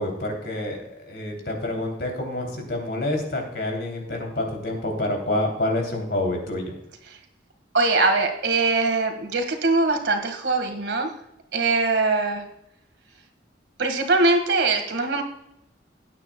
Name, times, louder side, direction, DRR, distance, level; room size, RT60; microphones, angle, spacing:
voice 1, 0.0-6.7, left 1 dB, 65° left, 2 dB, 3.1 m, -28 dB
voice 2, 7.7-11.1 11.5-12.5 13.8-15.2, right 3 dB, 80° right, 5 dB, 1.8 m, -22 dB
17.0 x 9.1 x 2.3 m, 0.81 s
head